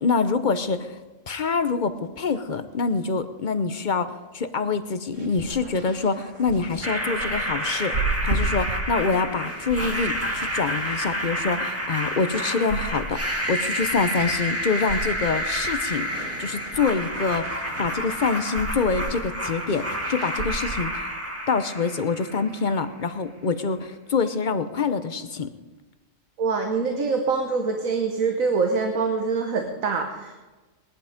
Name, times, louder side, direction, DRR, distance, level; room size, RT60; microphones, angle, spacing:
voice 1, 0.0-1.0 1.3-8.0 8.2-16.1 16.4-21.1 21.5-25.5, left 4 dB, 45° left, 11 dB, 0.8 m, -26 dB
sound 1, 5.1-20.8, right 3 dB, 70° right, 2.6 m, -35 dB
sound 2, 6.8-22.8, equal, 10° right, 1.8 m, -29 dB
voice 2, 26.4-30.3, right 4 dB, 90° right, 4 dB, 1.6 m, -24 dB
19.5 x 11.5 x 5.1 m, 1.2 s
omnidirectional pair, 1.4 m